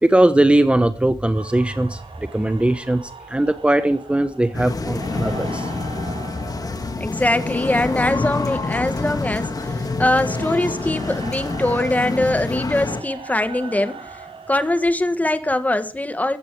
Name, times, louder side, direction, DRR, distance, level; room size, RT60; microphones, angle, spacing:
voice 1, 0.0-2.0 2.3-5.7, right 1 dB, 10° right, 1.1 m, -19 dB
sound 1, 1.3-14.9, right 4 dB, 80° right, 5.2 m, -39 dB
sound 2, 4.5-13.0, left 3 dB, 40° left, 2.0 m, -27 dB
voice 2, 7.0-14.2 14.5-16.4, left 1 dB, 15° left, 1.6 m, -22 dB
15.5 x 14.5 x 4.9 m
wide cardioid pair, 110°, 9 cm